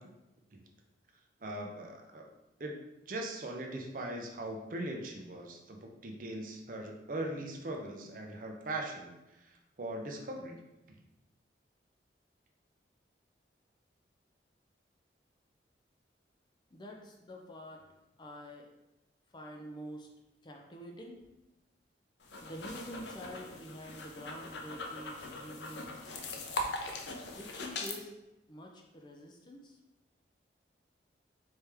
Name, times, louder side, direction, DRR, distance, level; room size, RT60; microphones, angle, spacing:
voice 1, 1.4-2.3 2.6-9.1 9.8-10.6, right 1 dB, 50° right, 1 dB, 0.6 m, -40 dB
voice 2, 16.7-18.7 19.3-20.1 20.4-21.2 22.4-26.1 27.3-28.1 28.5-29.8, equal, 25° left, 1 dB, 0.5 m, -47 dB
sound 1, 22.2-28.0, left 2 dB, 75° left, 0.6 m, -41 dB
4.3 x 3.3 x 3.4 m, 0.96 s
head